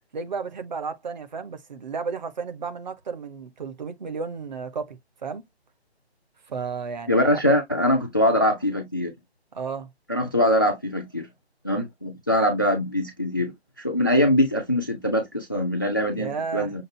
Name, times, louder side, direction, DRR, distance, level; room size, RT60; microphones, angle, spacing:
voice 1, 0.1-5.4 6.5-7.4 9.5-9.9 16.1-16.7, right 5 dB, 45° right, 1.2 m, -33 dB
voice 2, 7.1-9.1 10.1-11.3 11.6-16.8, left 1 dB, 20° left, 0.4 m, -23 dB
6.5 x 2.5 x 2.7 m
figure-of-eight pair, 160°, 33 cm